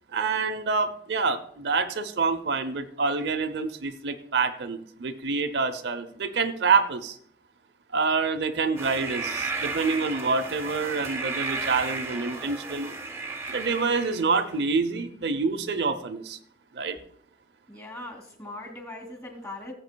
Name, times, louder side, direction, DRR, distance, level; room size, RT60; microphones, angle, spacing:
voice 1, 0.1-7.2 7.9-12.9 13.5-16.4 16.7-17.0, right 4 dB, 80° right, 7 dB, 0.7 m, -27 dB
sound 1, 8.8-14.5, right 4 dB, 15° right, 0.8 m, -34 dB
voice 2, 17.7-19.7, left 2 dB, 20° left, 3 dB, 2.5 m, -40 dB
18.0 x 7.6 x 2.2 m, 0.66 s
head